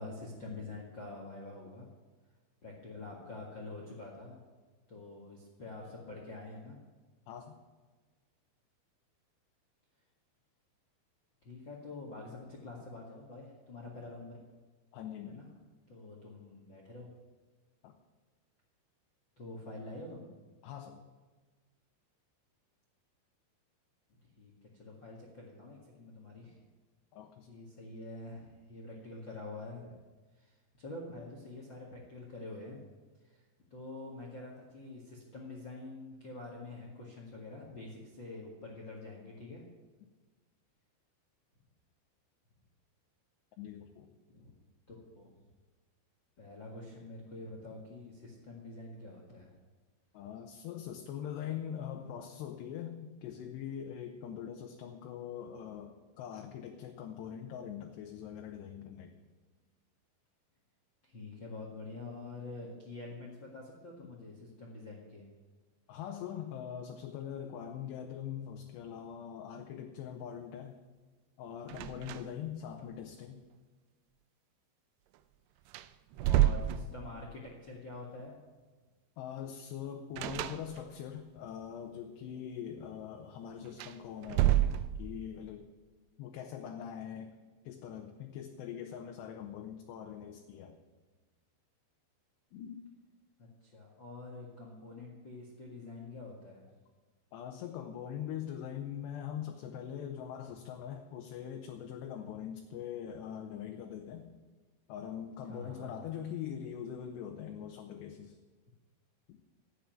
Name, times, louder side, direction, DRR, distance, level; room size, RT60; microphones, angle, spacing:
voice 1, 0.0-1.9 2.6-4.4 4.9-6.8 11.4-14.4 15.2-15.5 15.9-17.1 19.4-20.3 24.1-26.6 27.5-30.0 30.3-32.8 33.2-33.4 33.7-39.6 44.3-44.5 44.9-45.3 46.4-49.5 61.0-65.3 76.2-78.4 93.4-96.7 105.5-105.9, left 2 dB, 50° left, -1 dB, 1.4 m, -46 dB
voice 2, 7.3-7.6 14.9-15.5 17.8-17.9 20.6-21.0 27.1-27.5 43.6-44.1 50.1-59.1 65.9-70.8 71.4-73.4 79.2-85.7 86.2-87.3 87.6-90.8 92.5-92.8 97.3-104.3 104.9-108.4, left 9 dB, 75° left, 4 dB, 2.9 m, -42 dB
sound 1, 71.7-72.5 72.8-72.9 75.1-75.2 75.7-77.4 80.2-81.1 83.6-85.3, right 12 dB, 85° right, 2.6 m, -30 dB
13.0 x 9.3 x 9.1 m, 1.3 s
omnidirectional pair, 5.2 m